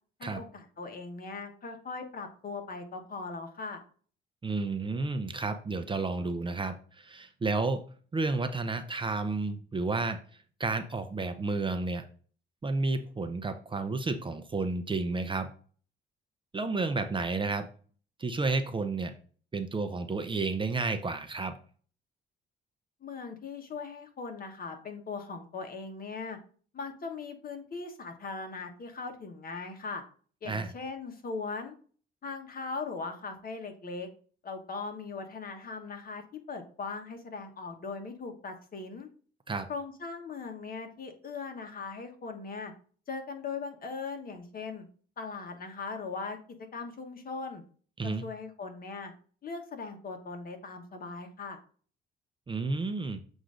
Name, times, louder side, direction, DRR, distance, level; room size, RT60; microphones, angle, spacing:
voice 1, 0.2-3.8 23.0-26.4 26.7-30.0 30.4-31.7 32.2-34.1 34.4-36.2 36.5-39.1 39.7-42.7 43.1-44.9 45.2-46.4 46.7-47.6 48.0-49.1 49.4-51.6, left 4 dB, 45° left, 5 dB, 1.3 m, -39 dB
voice 2, 4.4-7.8 8.1-12.1 12.6-15.5 16.5-17.7 18.2-19.2 19.5-21.6 30.5-30.7 39.5-39.7 48.0-48.2 52.5-53.2, right 3 dB, 25° right, 8 dB, 0.6 m, -31 dB
7.7 x 2.7 x 5.0 m, 0.43 s
cardioid pair, 90°, 20 cm